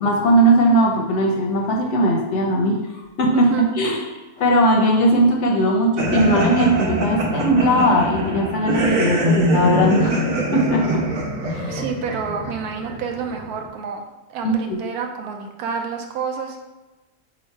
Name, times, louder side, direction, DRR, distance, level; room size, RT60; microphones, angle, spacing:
voice 1, 0.0-4.0 4.4-10.2 10.5-11.1 11.5-11.8 14.4-14.8, right 1 dB, 60° left, 1 dB, 0.8 m, -19 dB
voice 2, 3.3-3.7 11.7-14.0 14.3-16.6, right 6 dB, 90° right, 3 dB, 1.1 m, -28 dB
sound 1, 6.0-13.6, right 1 dB, 70° right, 1.2 m, -23 dB
3.9 x 3.0 x 4.4 m, 1.1 s
omnidirectional pair, 1.6 m